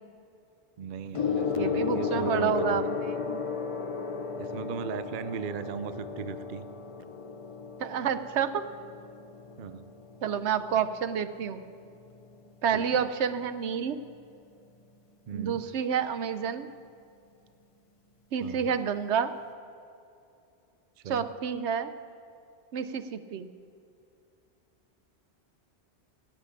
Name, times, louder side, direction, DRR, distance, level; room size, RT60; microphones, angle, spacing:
voice 1, 0.8-2.9 4.4-6.7 9.6-9.8 12.7-12.8 15.3-15.6 18.4-18.7 21.0-21.2, right 7 dB, 55° right, 12 dB, 0.7 m, -37 dB
Gong, 1.1-10.9 11.9-12.1, left 5 dB, 40° left, 0.6 m, -34 dB
voice 2, 1.6-3.4 7.8-8.6 10.2-11.6 12.6-14.0 15.3-16.7 18.3-19.3 21.1-21.9 22.7-23.5, right 7 dB, 80° right, 11 dB, 1.0 m, -29 dB
17.5 x 5.8 x 10.0 m, 2.6 s
omnidirectional pair, 1.1 m